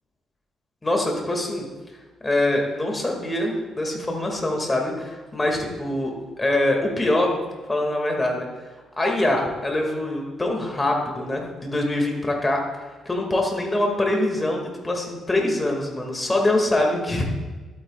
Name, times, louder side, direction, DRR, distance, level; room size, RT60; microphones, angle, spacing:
voice 1, 0.8-1.6 2.2-7.4 7.7-8.5 9.0-12.6 13.1-17.3, left 1 dB, 20° left, 1 dB, 2.2 m, -24 dB
12.0 x 9.2 x 2.4 m, 1.3 s
cardioid pair, 90°, 0 cm